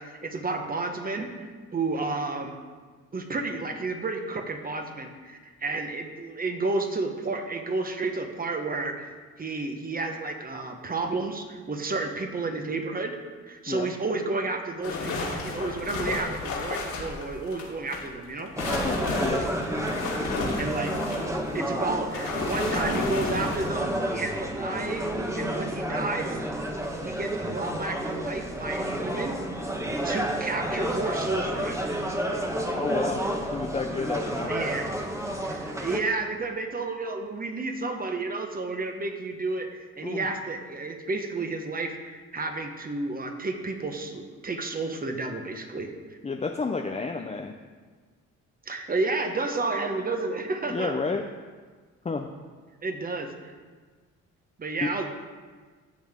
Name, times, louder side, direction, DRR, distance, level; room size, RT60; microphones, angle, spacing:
voice 1, 0.0-2.6 3.1-9.1 9.4-13.2 13.5-18.5 20.6-20.9 21.5-26.4 27.0-29.7 30.0-31.8 32.3-32.4 34.5-34.9 35.4-45.9 48.6-51.0 52.8-53.5 54.6-55.0, right 3 dB, 30° right, 5 dB, 1.3 m, -31 dB
sound 1, 14.8-18.0 18.4-23.7, left 3 dB, 80° left, 2.7 m, -32 dB
sound 2, 18.6-36.0, right 1 dB, 10° right, 1.2 m, -30 dB
voice 2, 18.8-19.5 32.7-33.2 33.5-34.5 40.0-40.3 46.2-47.5 50.7-51.2 52.0-52.3 54.8-54.9, left 4 dB, 20° left, 3 dB, 0.6 m, -30 dB
14.0 x 7.2 x 3.7 m, 1.5 s
cardioid pair, 90°, 30 cm